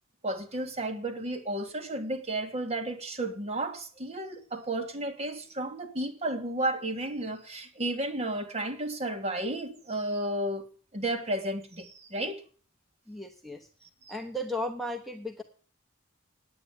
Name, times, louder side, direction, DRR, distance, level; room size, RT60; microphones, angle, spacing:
voice 1, 0.2-10.7 10.9-12.4 14.0-14.1, right 1 dB, 30° right, 1.7 m, -33 dB
voice 2, 13.1-13.7 14.1-15.4, left 1 dB, ahead, 0.9 m, -35 dB
9.4 x 8.9 x 9.6 m
head